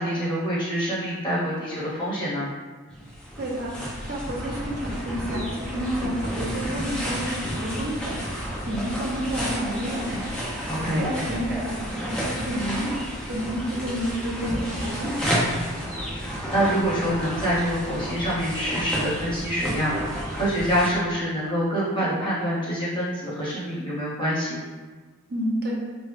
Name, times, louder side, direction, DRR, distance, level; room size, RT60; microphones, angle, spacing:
voice 1, 0.0-2.5 10.7-11.1 16.1-24.5, equal, 20° left, -9 dB, 0.9 m, -26 dB
sound 1, 2.9-20.9, equal, 5° left, 0.5 m, -31 dB
voice 2, 3.4-10.2 10.9-15.2 25.3-25.8, equal, 45° right, -3 dB, 0.6 m, -30 dB
3.1 x 2.3 x 3.2 m, 1.4 s
head